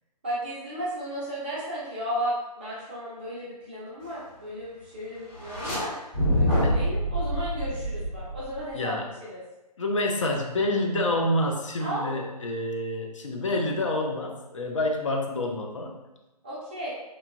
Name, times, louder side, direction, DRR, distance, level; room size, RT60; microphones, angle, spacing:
voice 1, 0.2-5.9 6.3-8.9 9.2-9.4 11.8-12.2 16.4-16.9, equal, 15° right, -8 dB, 0.4 m, -34 dB
sound 1, 5.3-5.8 6.1-8.7, equal, 15° left, 0.7 m, -26 dB
voice 2, 8.7-9.1 9.8-16.0, left 1 dB, 50° left, 1 dB, 0.4 m, -28 dB
2.9 x 2.2 x 2.3 m, 0.99 s
figure-of-eight pair, 145°, 21 cm